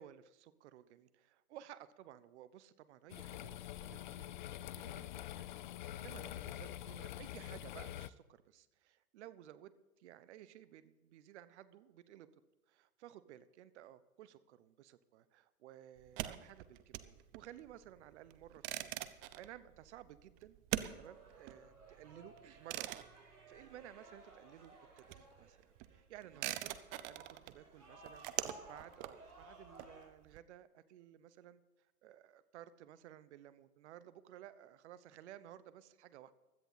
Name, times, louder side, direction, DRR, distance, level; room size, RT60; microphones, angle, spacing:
voice 1, 0.0-4.3 4.8-5.5 6.0-9.7 10.0-12.3 12.7-20.6 21.0-25.6 25.9-26.7 27.0-28.3 28.7-31.6 32.0-36.3, right 12 dB, 50° right, 15 dB, 1.1 m, -56 dB
sound 1, 3.1-8.1, left 12 dB, 35° left, 0.4 m, -46 dB
sound 2, 16.0-24.3 24.6-30.4, right 15 dB, 20° right, 0.5 m, -44 dB
sound 3, 20.9-30.1, right 2 dB, 85° right, 4.5 m, -59 dB
16.0 x 13.0 x 4.1 m, 1.1 s
hypercardioid pair, 120°, 45 cm